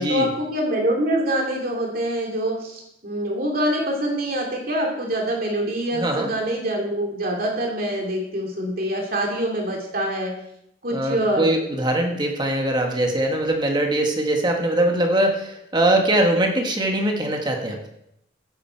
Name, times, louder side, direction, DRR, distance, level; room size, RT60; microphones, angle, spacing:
voice 1, 0.0-10.3 10.8-11.5, right 1 dB, 50° right, 0 dB, 2.6 m, -25 dB
voice 2, 5.9-6.3 10.9-17.8, right 1 dB, 25° right, 2 dB, 1.4 m, -22 dB
15.5 x 9.1 x 4.5 m, 0.79 s
head